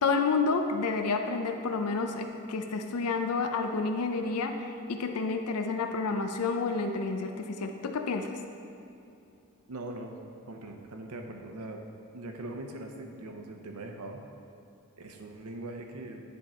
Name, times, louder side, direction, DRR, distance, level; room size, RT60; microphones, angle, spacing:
voice 1, 0.0-8.3, left 4 dB, 85° left, 5 dB, 0.5 m, -30 dB
voice 2, 9.7-10.1 10.5-11.8 12.1-14.2 15.0-16.2, right 2 dB, 85° right, 3 dB, 0.8 m, -41 dB
10.5 x 3.6 x 4.3 m, 2.8 s
head